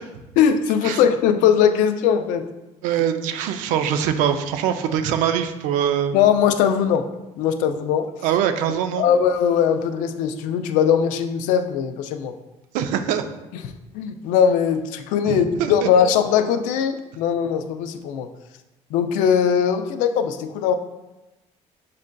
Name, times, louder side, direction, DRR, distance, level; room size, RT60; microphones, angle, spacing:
voice 1, 0.4-2.5 6.1-7.0 7.4-8.1 9.0-12.3 13.9-18.3 18.9-20.7, left 8 dB, 85° left, 8 dB, 0.4 m, -20 dB
voice 2, 2.8-6.2 8.2-9.1 12.7-13.3 15.3-15.9, right 9 dB, 85° right, 8 dB, 0.4 m, -23 dB
7.2 x 2.5 x 2.2 m, 1.0 s
cardioid pair, 115°, 13 cm